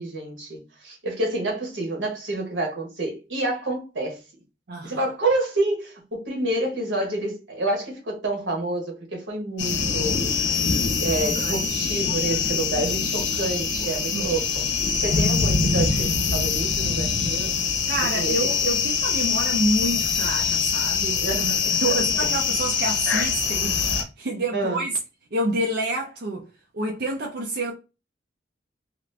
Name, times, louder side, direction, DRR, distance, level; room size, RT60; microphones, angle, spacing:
voice 1, 0.0-4.2 4.8-10.2 11.0-14.7 15.0-17.5 18.1-18.4 21.2-22.2 24.5-24.8, right 2 dB, 85° right, 1.2 m, -28 dB
voice 2, 4.7-5.0 11.2-11.9 14.1-14.7 15.0-15.2 17.9-21.4 21.8-24.9 25.3-26.5 26.7-27.7, right 1 dB, 60° right, 0.6 m, -28 dB
sound 1, 9.6-24.0, left 5 dB, 80° left, 0.7 m, -24 dB
2.9 x 2.4 x 3.2 m
head